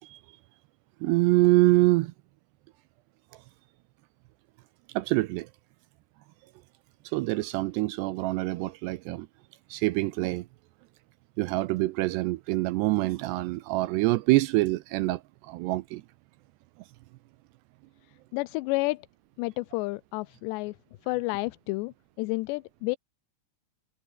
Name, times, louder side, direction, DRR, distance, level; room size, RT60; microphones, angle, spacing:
voice 1, 1.0-2.1 4.9-5.5 7.1-9.3 9.7-10.5 11.4-16.0, right 19 dB, 80° right, 2.6 m, -25 dB
voice 2, 18.3-19.1 19.4-20.8 21.0-23.0, left 23 dB, 80° left, 2.7 m, -30 dB
omnidirectional pair, 5.3 m